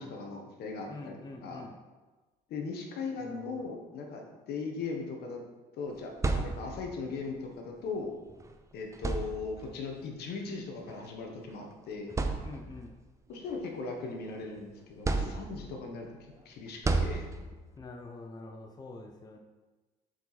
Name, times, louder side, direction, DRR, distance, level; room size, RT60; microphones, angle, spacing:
voice 1, 0.0-1.6 2.5-5.4 5.8-8.1 8.7-12.1 13.3-16.1 16.4-17.3, left 4 dB, 70° left, 2 dB, 1.2 m, -39 dB
voice 2, 0.9-1.8 3.2-3.6 12.4-12.9 17.8-19.4, left 2 dB, 25° left, 2 dB, 0.7 m, -46 dB
sound 1, 5.9-7.0 8.3-8.4 8.9-9.8 10.9-11.1 11.6-11.7 12.1-12.9 13.4-14.5 15.0-15.9 16.8-17.7, right 3 dB, 20° right, 0.5 m, -32 dB
6.6 x 4.7 x 4.1 m, 1.2 s
cardioid pair, 110°, 17 cm